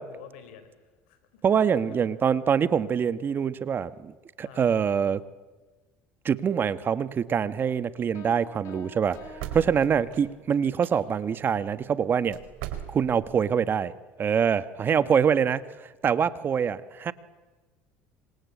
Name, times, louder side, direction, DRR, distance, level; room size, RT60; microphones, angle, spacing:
voice 1, 0.0-2.1 4.4-4.6 9.5-9.7 14.8-15.6, left 10 dB, 85° left, 10 dB, 4.6 m, -49 dB
voice 2, 1.4-4.1 4.4-5.2 6.2-9.2 9.5-12.4 12.9-13.9 14.2-15.6 16.0-17.1, right 7 dB, 35° right, 14 dB, 1.4 m, -24 dB
sound 1, 8.1-10.5, left 2 dB, 55° left, 5.3 m, -48 dB
sound 2, 9.1-10.9 12.3-13.3, right 11 dB, 80° right, 4.4 m, -39 dB
26.5 x 26.0 x 8.5 m, 1.2 s
supercardioid pair, 95°, 6 cm